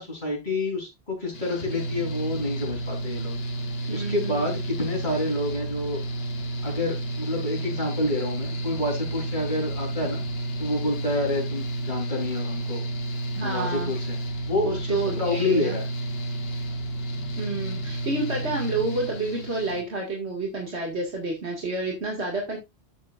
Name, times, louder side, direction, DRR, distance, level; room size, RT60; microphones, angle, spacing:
voice 1, 0.0-3.4 3.9-6.0 6.6-10.2 10.6-12.8 13.4-14.2 14.4-15.8, left 2 dB, 45° left, -1 dB, 4.0 m, -28 dB
Mechanical fan, 1.3-19.8, right 2 dB, 65° left, 1.4 m, -31 dB
voice 2, 3.9-4.5 13.3-13.9 14.6-15.8 17.4-22.6, right 2 dB, 90° right, -1 dB, 2.4 m, -29 dB
10.5 x 7.6 x 2.5 m, 0.21 s
omnidirectional pair, 1.1 m